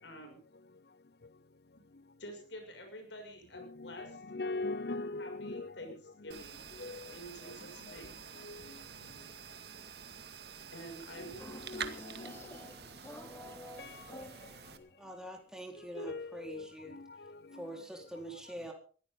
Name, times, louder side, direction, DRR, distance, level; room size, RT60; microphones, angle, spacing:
voice 1, 0.0-0.4 1.8-1.9 2.2-4.2 5.2-6.0 6.2-6.6 7.1-8.1 10.7-11.9, equal, 85° left, 6.4 m, -48 dB
voice 2, 3.5-6.0 6.2-6.4 6.8-7.1 8.4-8.6 11.2-12.3 13.8-14.3 15.9-17.6, left 2 dB, 60° left, 0.7 m, -41 dB
sound 1, 6.3-14.8, right 6 dB, 60° right, 2.1 m, -48 dB
sound 2, 11.4-14.9, equal, 15° left, 2.6 m, -50 dB
voice 3, 15.0-17.0 17.5-18.7, right 1 dB, 5° right, 4.2 m, -45 dB
22.0 x 16.0 x 3.9 m
head